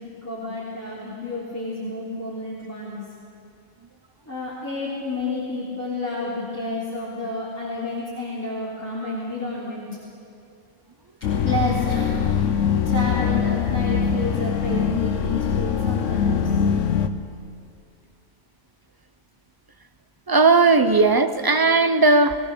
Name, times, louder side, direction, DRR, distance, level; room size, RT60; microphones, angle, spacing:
voice 1, 0.0-3.0 4.3-9.9 11.4-12.2 12.8-16.5, left 2 dB, 10° left, -8 dB, 3.5 m, -30 dB
sound 1, 11.2-17.1, left 7 dB, 80° left, 1.2 m, -22 dB
voice 2, 20.3-22.4, right 3 dB, 25° right, 9 dB, 0.5 m, -17 dB
22.0 x 17.5 x 6.8 m, 2.4 s
omnidirectional pair, 1.3 m